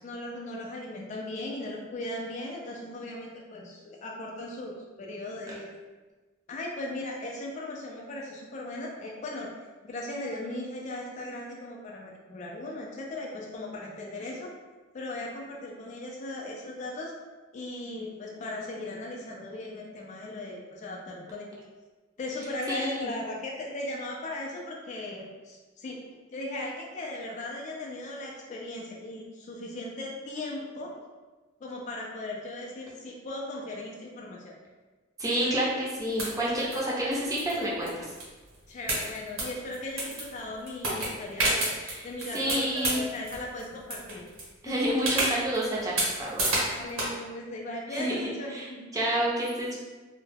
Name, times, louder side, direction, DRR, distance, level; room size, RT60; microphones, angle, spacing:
voice 1, 0.0-5.7 6.5-9.5 9.8-14.5 14.9-17.1 17.5-21.5 22.2-26.0 26.3-30.9 31.6-34.5 35.2-35.5 38.7-41.7 42.0-44.2 44.7-44.8 46.6-49.3, left 1 dB, 35° left, -1 dB, 0.3 m, -38 dB
voice 2, 22.7-23.1 35.2-38.1 41.8-42.1 42.3-43.0 44.6-45.9 46.2-46.4 47.9-48.2 48.5-48.7 48.9-49.8, equal, 15° right, -6 dB, 0.5 m, -29 dB
sound 1, 36.2-36.8 37.1-38.6 38.9-40.4 40.7-43.6 43.9-44.4 45.0-47.1, right 2 dB, 70° right, 0.9 m, -29 dB
2.2 x 2.0 x 3.2 m, 1.3 s
head